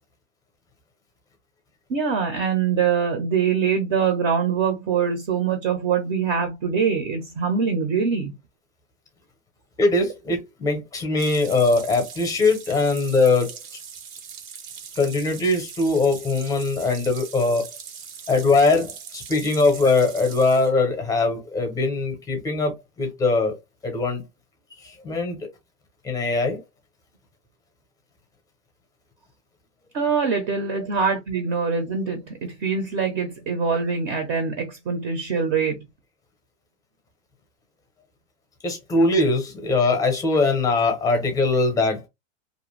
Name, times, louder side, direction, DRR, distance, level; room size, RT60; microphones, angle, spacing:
voice 1, 1.9-8.3 29.9-35.9, right 6 dB, 35° right, 0.6 m, -24 dB
voice 2, 9.8-13.5 15.0-17.7 18.3-23.6 23.8-24.2 24.8-25.5 26.0-26.6 38.6-42.1, left 3 dB, 10° left, 0.6 m, -21 dB
sound 1, 11.2-20.7, right 7 dB, 80° right, 1.1 m, -41 dB
2.5 x 2.1 x 3.0 m
supercardioid pair, 145°, 40 cm